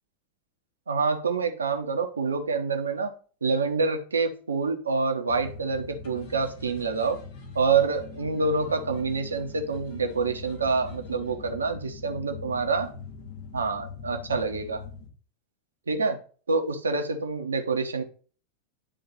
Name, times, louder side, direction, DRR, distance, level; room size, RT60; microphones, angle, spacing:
voice 1, 0.9-3.1 3.4-7.2 7.5-12.9 13.5-14.8 15.9-16.2 16.5-18.0, right 4 dB, 70° right, 6 dB, 1.1 m, -27 dB
sound 1, 5.3-15.1, left 5 dB, 50° left, 1.7 m, -42 dB
10.0 x 3.8 x 4.1 m, 0.40 s
figure-of-eight pair, 90°, 0 cm